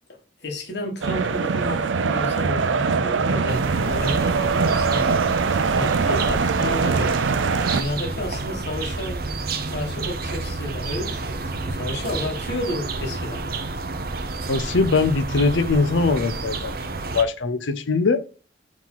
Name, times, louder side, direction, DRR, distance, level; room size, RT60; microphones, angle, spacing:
voice 1, 0.4-5.1 5.7-7.1 7.7-9.2 9.7-13.6, left 1 dB, 65° left, 1.8 m, -31 dB
sound 1, 1.0-7.8, right 5 dB, 85° right, 0.5 m, -22 dB
sound 2, 3.5-17.2, right 3 dB, 55° right, 0.8 m, -30 dB
voice 2, 14.5-16.8 17.1-18.2, left 4 dB, 85° left, 0.7 m, -21 dB
4.9 x 3.8 x 5.6 m
head